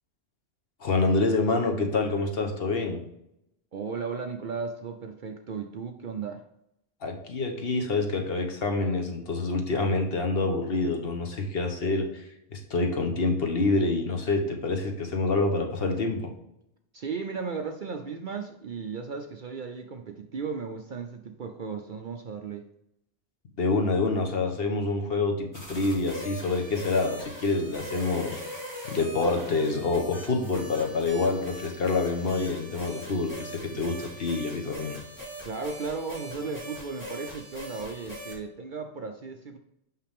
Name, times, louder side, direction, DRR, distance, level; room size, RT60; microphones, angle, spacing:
voice 1, 0.8-3.0 7.0-12.2 12.5-16.3 23.6-28.4 28.9-35.0, left 3 dB, 55° left, 3 dB, 1.2 m, -27 dB
voice 2, 3.7-6.4 16.9-22.7 35.4-39.6, right 5 dB, 55° right, 5 dB, 0.6 m, -35 dB
sound 1, 25.5-38.3, left 1 dB, 15° left, 2.7 m, -41 dB
5.8 x 5.7 x 3.5 m, 0.80 s
omnidirectional pair, 1.2 m